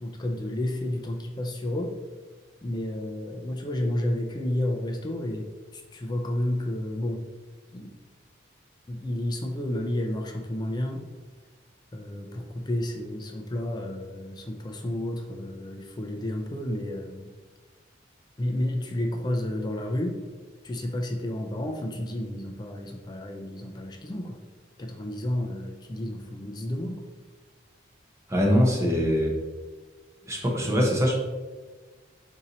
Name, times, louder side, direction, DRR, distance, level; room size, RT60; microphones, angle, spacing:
voice 1, 0.0-1.9 2.6-5.5 5.7-7.2 7.7-7.9 8.9-11.0 11.9-17.3 18.4-20.2 20.6-24.4 24.8-27.0, left 1 dB, 20° left, 2 dB, 0.3 m, -31 dB
voice 2, 28.3-29.4 30.3-31.2, equal, 15° right, -1 dB, 0.7 m, -23 dB
4.2 x 2.7 x 3.9 m, 1.3 s
head